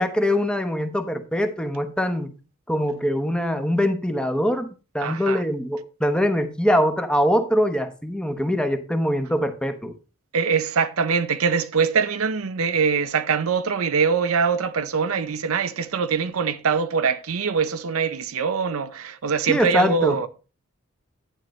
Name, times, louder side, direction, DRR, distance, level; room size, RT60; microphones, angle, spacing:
voice 1, 0.0-2.3 2.7-4.7 4.9-9.9 19.5-20.2, equal, 5° left, 1.0 m, -23 dB
voice 2, 5.0-5.4 10.3-20.3, right 5 dB, 75° right, 0.6 m, -23 dB
11.5 x 9.1 x 3.2 m
head